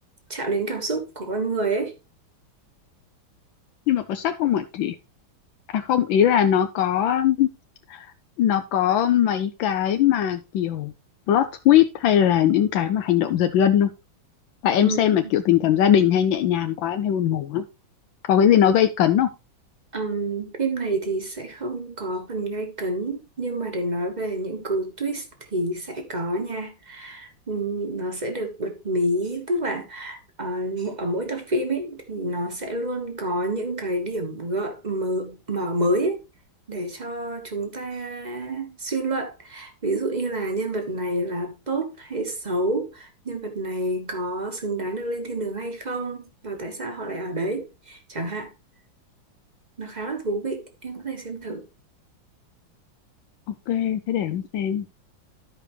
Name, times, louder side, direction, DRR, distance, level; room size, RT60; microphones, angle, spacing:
voice 1, 0.3-1.9 14.8-15.3 19.9-25.2 25.5-36.2 36.7-48.5 49.8-51.6, right 2 dB, 25° right, 1.3 m, -28 dB
voice 2, 3.9-5.0 5.7-7.5 7.9-8.0 8.4-10.9 11.3-13.9 14.6-17.6 18.3-19.3 53.5-54.9, left 10 dB, 80° left, 1.4 m, -20 dB
13.5 x 5.0 x 3.1 m
omnidirectional pair, 2.2 m